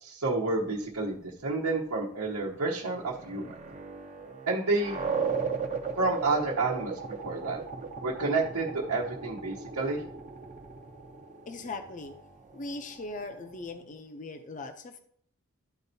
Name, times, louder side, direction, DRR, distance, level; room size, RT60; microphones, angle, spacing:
voice 1, 0.0-3.5 4.5-5.0 6.0-6.9 7.2-7.6 8.0-10.0, right 3 dB, 85° right, -5 dB, 1.1 m, -29 dB
sound 1, 2.4-13.8, right 5 dB, 35° right, 0.6 m, -37 dB
voice 2, 11.5-12.1 12.5-15.0, left 3 dB, 35° left, 7 dB, 0.5 m, -39 dB
12.5 x 4.4 x 2.7 m, 0.62 s
head